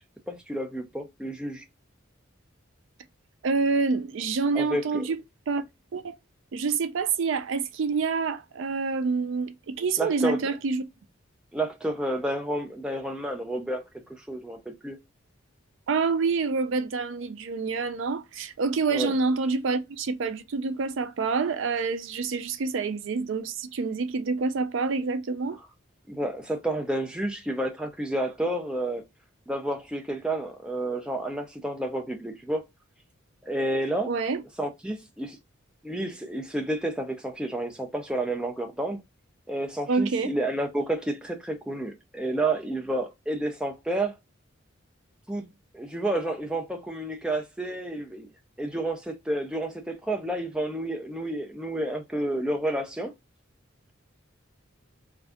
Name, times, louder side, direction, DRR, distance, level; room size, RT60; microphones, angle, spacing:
voice 1, 0.3-1.6 4.5-5.0 10.0-10.5 11.5-13.8 14.3-15.0 18.9-19.1 26.1-29.0 29.5-32.6 33.4-34.1 34.6-35.4 35.8-39.0 39.5-44.1 45.3-45.5 45.7-48.3 48.6-53.1, right 1 dB, 5° right, 0.4 m, -30 dB
voice 2, 3.4-5.2 5.5-5.6 5.9-6.2 6.5-10.8 15.9-25.6 34.1-34.4 39.9-40.3, right 4 dB, 70° right, 0.4 m, -27 dB
2.6 x 2.3 x 3.4 m
head